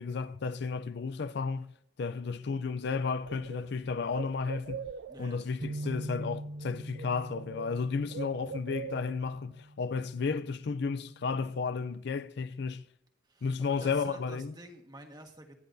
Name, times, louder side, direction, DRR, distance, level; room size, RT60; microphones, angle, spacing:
voice 1, 0.0-1.7 2.0-4.9 5.2-12.8 13.4-14.5, left 5 dB, 55° left, 0.4 m, -33 dB
Bird, 2.5-2.6 2.9-5.4 6.4-6.7 6.9-9.4, right 6 dB, 55° right, 0.4 m, -43 dB
voice 2, 5.1-5.9 13.2-15.6, right 1 dB, 20° right, 1.5 m, -49 dB
sound 1, 5.6-11.9, right 1 dB, 85° right, 1.1 m, -44 dB
25.0 x 10.0 x 2.7 m
head